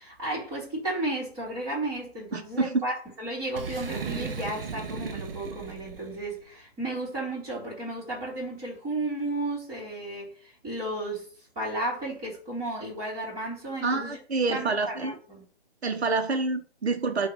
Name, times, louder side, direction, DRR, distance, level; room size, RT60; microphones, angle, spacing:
voice 1, 0.0-11.3 11.5-14.2 14.5-15.4, right 2 dB, 10° right, 2.6 m, -33 dB
voice 2, 2.3-2.8 13.8-15.2 15.8-17.3, right 3 dB, 85° right, 1.3 m, -27 dB
Boom, 3.5-6.3, right 5 dB, 60° right, 1.1 m, -36 dB
6.3 x 3.0 x 5.3 m
hypercardioid pair, 170°, 32 cm